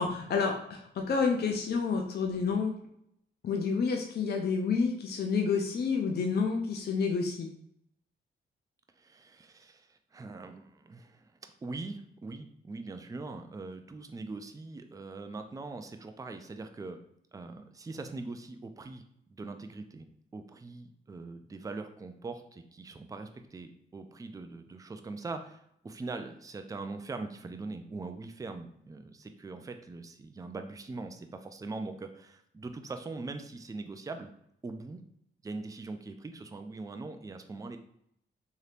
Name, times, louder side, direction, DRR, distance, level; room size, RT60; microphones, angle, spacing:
voice 1, 0.0-2.7 3.4-7.5, left 5 dB, 50° left, 2 dB, 0.5 m, -29 dB
voice 2, 9.0-17.0 17.3-19.0 19.3-34.3 34.6-35.0 35.4-37.8, right 3 dB, 15° right, 7 dB, 0.4 m, -42 dB
3.1 x 2.8 x 2.5 m, 0.72 s
supercardioid pair, 55°, 21 cm